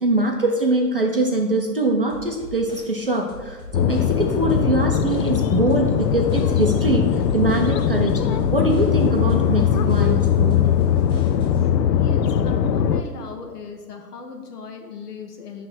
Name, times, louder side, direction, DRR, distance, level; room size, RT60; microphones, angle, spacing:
voice 1, 0.0-10.6, right 2 dB, 40° right, 1 dB, 0.4 m, -23 dB
sound 1, 2.1-11.7, left 1 dB, 30° left, 2.0 m, -42 dB
sound 2, 3.7-13.0, left 8 dB, 90° left, 0.6 m, -20 dB
sound 3, 5.9-11.4, right 8 dB, 15° left, 0.6 m, -40 dB
voice 2, 11.8-15.7, left 4 dB, 70° left, 3 dB, 1.3 m, -37 dB
6.5 x 3.3 x 6.0 m, 1.4 s
hypercardioid pair, 170°, 48 cm